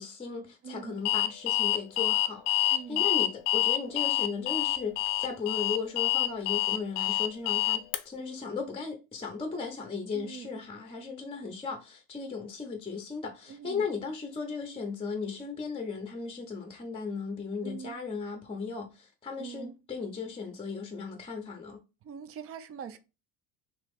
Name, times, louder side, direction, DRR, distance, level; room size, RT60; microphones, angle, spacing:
voice 1, 0.0-21.8, left 5 dB, 10° left, 0.7 m, -36 dB
voice 2, 0.6-0.9 2.7-3.1 10.1-10.5 13.5-13.8 17.6-18.0 19.4-19.7 22.0-23.0, right 7 dB, 30° right, 0.5 m, -43 dB
Alarm, 1.1-8.0, left 14 dB, 80° left, 0.6 m, -27 dB
3.0 x 2.9 x 3.5 m
supercardioid pair, 95°, 46 cm